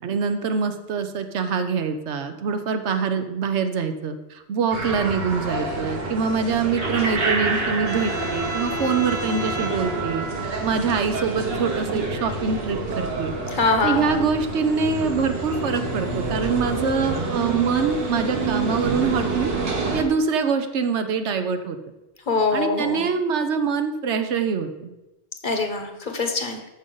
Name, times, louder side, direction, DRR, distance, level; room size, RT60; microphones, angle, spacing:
voice 1, 0.0-10.3 10.6-13.3 13.8-19.5 19.9-21.8 22.5-24.9, right 5 dB, 75° right, 8 dB, 1.1 m, -24 dB
sound 1, 4.7-20.0, right 3 dB, 60° right, 1.4 m, -27 dB
voice 2, 13.5-14.3 22.3-23.1 25.4-26.6, left 3 dB, 45° left, 4 dB, 1.1 m, -23 dB
13.5 x 5.2 x 3.9 m, 1.0 s
omnidirectional pair, 1.2 m